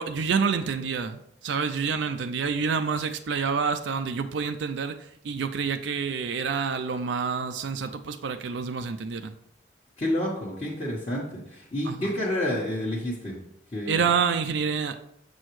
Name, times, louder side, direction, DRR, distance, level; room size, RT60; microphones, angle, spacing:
voice 1, 0.0-9.3 11.8-12.2 13.9-15.0, right 6 dB, 75° right, 8 dB, 0.4 m, -28 dB
voice 2, 10.0-13.4 13.7-14.0, left 1 dB, 35° left, -7 dB, 1.2 m, -29 dB
6.8 x 6.2 x 3.1 m, 0.74 s
head